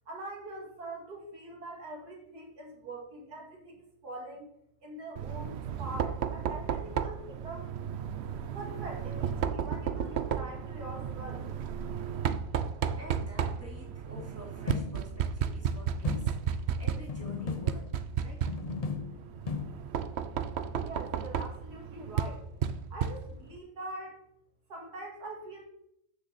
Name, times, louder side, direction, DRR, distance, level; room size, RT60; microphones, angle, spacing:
voice 1, 0.1-4.5 4.8-7.7 8.5-11.5 20.8-22.5 22.9-24.2 24.7-25.6, right 2 dB, 80° right, -1 dB, 3.0 m, -43 dB
Knock, 5.2-23.6, right 7 dB, 60° right, 0.7 m, -34 dB
voice 2, 12.9-17.9 18.2-18.4, right 1 dB, 10° right, -3 dB, 2.9 m, -49 dB
sound 1, 14.2-15.3 16.0-16.7 17.1-18.2 18.5-19.7, left 5 dB, 45° left, 0.5 m, -37 dB
13.5 x 6.4 x 4.2 m, 0.76 s
omnidirectional pair, 1.6 m